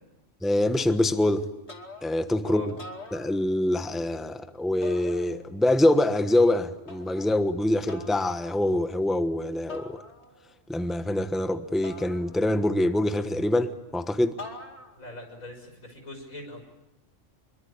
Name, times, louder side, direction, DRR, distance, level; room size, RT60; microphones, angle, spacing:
voice 1, 0.4-1.4 2.0-2.6 3.1-10.0 10.7-14.4, left 1 dB, ahead, 1.1 m, -25 dB
sound 1, 1.7-2.3 2.7-3.8 4.8-5.7 6.9-7.4 7.9-8.4 9.7-10.5 11.8-12.8 14.4-15.1, left 3 dB, 55° left, 2.8 m, -44 dB
voice 2, 15.0-16.6, left 1 dB, 85° left, 6.5 m, -41 dB
26.0 x 23.0 x 8.7 m
omnidirectional pair, 1.4 m